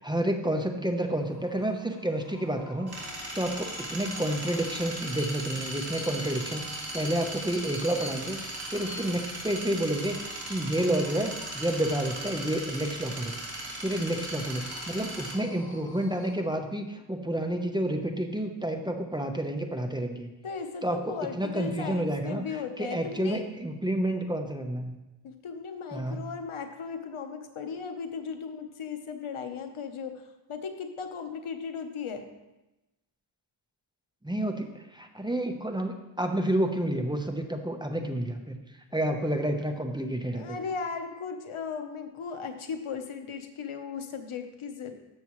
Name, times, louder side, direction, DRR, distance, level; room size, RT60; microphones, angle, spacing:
voice 1, 0.0-2.9 3.3-13.4 13.8-20.3 20.8-25.0 25.9-26.3 34.2-38.6 38.9-40.4, right 1 dB, 10° right, 4 dB, 0.9 m, -30 dB
sound 1, 1.0-16.7, left 2 dB, 50° left, 2.7 m, -49 dB
sound 2, 2.9-15.3, right 1 dB, 50° right, 2.6 m, -38 dB
voice 2, 20.4-23.4 25.2-32.3 40.3-44.9, left 6 dB, 90° left, 6 dB, 1.0 m, -37 dB
13.0 x 7.2 x 3.1 m, 1.0 s
wide cardioid pair, 85°, 48 cm